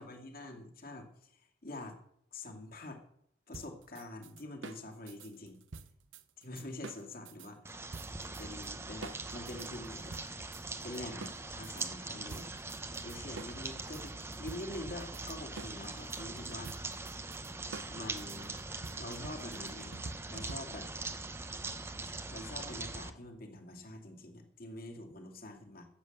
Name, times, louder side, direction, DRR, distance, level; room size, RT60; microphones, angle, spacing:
voice 1, 0.0-2.0 2.3-3.0 3.5-5.6 6.4-7.9 8.4-10.2 10.8-12.5 12.9-16.8 17.9-18.6 19.0-19.9 20.3-20.9 22.3-25.9, left 1 dB, 50° left, 3 dB, 2.5 m, -46 dB
sound 1, 3.5-7.5 7.9-8.7 9.0-11.9 12.3-21.0, right 3 dB, 80° right, 0.8 m, -48 dB
sound 2, 7.6-23.1, right 3 dB, 15° right, 0.7 m, -42 dB
13.0 x 7.5 x 8.0 m, 0.72 s
head